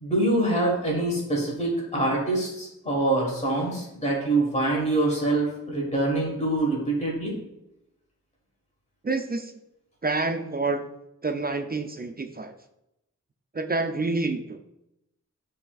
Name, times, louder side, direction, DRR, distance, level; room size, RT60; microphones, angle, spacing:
voice 1, 0.0-7.4, right 2 dB, 20° left, -3 dB, 1.4 m, -25 dB
voice 2, 9.0-9.5 10.0-10.8 11.2-12.5 13.5-14.6, right 3 dB, 30° right, 6 dB, 0.4 m, -28 dB
6.8 x 3.3 x 2.3 m, 0.86 s
cardioid pair, 50°, 32 cm